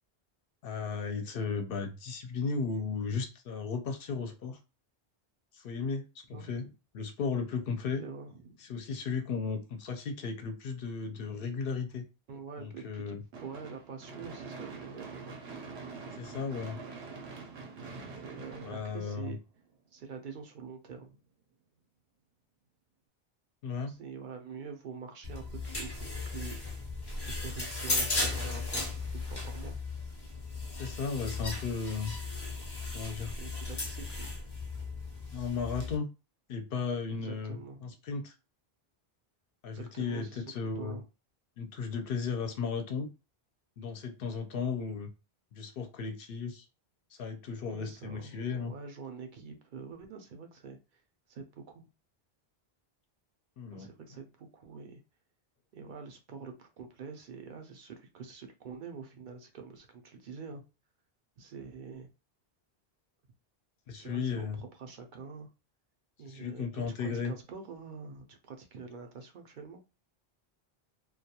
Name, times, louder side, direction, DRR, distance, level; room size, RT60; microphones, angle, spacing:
voice 1, 0.6-4.6 5.5-6.6 6.9-8.0 8.6-12.1 12.6-13.2 16.2-16.8 18.6-19.4 23.6-23.9 30.8-32.1 32.9-33.4 35.3-36.1 36.5-38.3 39.6-41.0 41.6-43.1 43.8-45.1 45.5-46.6 47.2-48.7 53.6-53.9 63.9-64.6 66.3-67.3, left 5 dB, 65° left, 5 dB, 0.7 m, -35 dB
voice 2, 6.3-6.7 8.0-8.6 12.3-15.4 18.2-19.4 19.9-21.2 23.9-26.8 27.2-29.8 33.4-34.4 37.1-37.9 39.7-41.1 47.6-51.0 51.3-51.9 53.7-55.0 55.7-60.6 61.4-62.1 63.9-65.5 66.2-69.8, right 5 dB, 60° right, 4 dB, 0.6 m, -46 dB
Gunshot gunfire / Fireworks, 13.3-19.6, right 4 dB, 85° right, 0.9 m, -45 dB
sound 1, 25.2-35.9, left 3 dB, 30° left, 0.5 m, -36 dB
2.2 x 2.2 x 2.8 m, 0.29 s
omnidirectional pair, 1.0 m